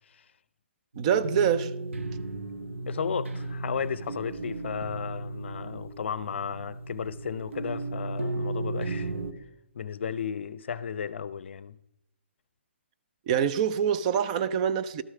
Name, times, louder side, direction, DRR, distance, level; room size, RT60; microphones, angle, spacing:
sound 1, 0.9-9.3, right 2 dB, 80° right, 1.0 m, -35 dB
voice 1, 1.0-1.7 13.3-15.0, right 8 dB, 35° right, 0.5 m, -25 dB
voice 2, 2.9-9.2 9.7-11.7, left 7 dB, 65° left, 0.5 m, -34 dB
12.5 x 6.3 x 4.8 m
hypercardioid pair, 145°, 7 cm